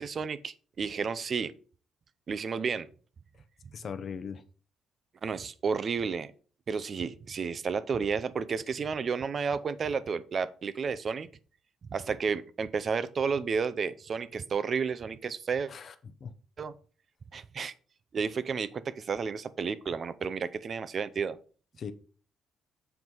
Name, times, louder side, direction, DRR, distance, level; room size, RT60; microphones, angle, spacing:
voice 1, 0.0-1.5 2.3-2.9 5.2-6.3 6.7-11.3 11.9-15.7 16.6-16.7 17.3-17.7 18.1-21.4, right 5 dB, 35° right, 15 dB, 0.5 m, -32 dB
voice 2, 3.7-4.4 15.7-16.3 21.8-21.9, left 6 dB, 35° left, 10 dB, 0.7 m, -39 dB
8.0 x 4.6 x 5.4 m, 0.40 s
cardioid pair, 175°, 0 cm